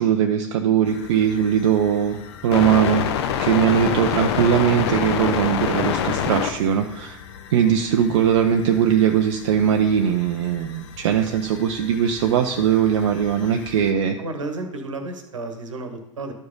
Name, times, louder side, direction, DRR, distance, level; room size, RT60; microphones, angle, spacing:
voice 1, 0.0-3.0 3.4-7.2 7.5-14.2, right 8 dB, 55° right, 4 dB, 0.6 m, -20 dB
sound 1, 0.9-13.9, left 8 dB, 55° left, 0.7 m, -29 dB
voice 2, 14.2-16.3, right 2 dB, 75° right, 6 dB, 1.3 m, -32 dB
12.5 x 4.8 x 3.9 m, 0.97 s
figure-of-eight pair, 90°, 17 cm